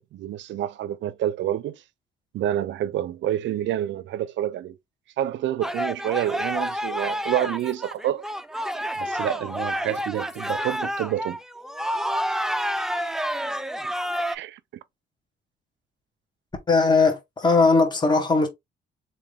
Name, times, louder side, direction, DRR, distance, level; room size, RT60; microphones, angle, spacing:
voice 1, 0.0-1.8 2.3-4.8 5.2-8.3 9.0-11.4 14.3-14.6, right 12 dB, 70° right, 0.5 m, -28 dB
sound 1, 5.6-14.4, equal, ahead, 0.4 m, -29 dB
voice 2, 16.7-18.5, left 3 dB, 20° left, 1.4 m, -19 dB
3.5 x 2.7 x 3.3 m
cardioid pair, 90°, 20 cm